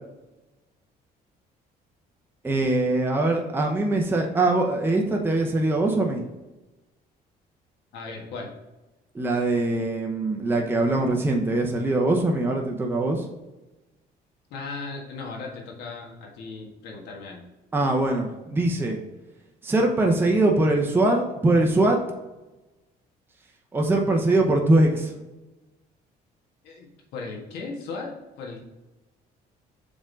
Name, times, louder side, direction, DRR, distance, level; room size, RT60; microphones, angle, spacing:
voice 1, 2.4-6.2 9.1-13.3 17.7-19.0 19.6-22.0 23.7-25.2, right 2 dB, 15° right, 1 dB, 0.8 m, -22 dB
voice 2, 7.9-8.5 14.5-17.4 26.6-26.9 27.1-28.7, left 4 dB, 85° left, -1 dB, 1.6 m, -37 dB
5.1 x 3.6 x 5.1 m, 1.1 s
cardioid pair, 110°, 17 cm